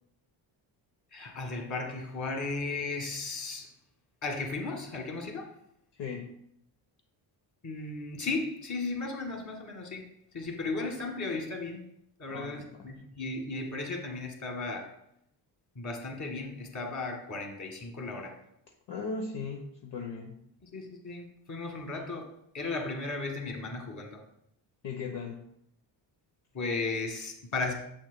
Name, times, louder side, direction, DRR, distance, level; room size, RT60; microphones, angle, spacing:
voice 1, 1.1-3.7 4.2-5.6 7.6-11.9 12.2-15.0 15.8-18.4 20.6-24.2 26.5-27.7, left 3 dB, 40° left, 2 dB, 1.7 m, -35 dB
voice 2, 6.0-6.3 12.3-12.9 18.9-20.4 24.8-25.4, left 4 dB, 60° left, 1 dB, 1.0 m, -37 dB
7.3 x 6.2 x 2.2 m, 0.75 s
cardioid pair, 75°, 47 cm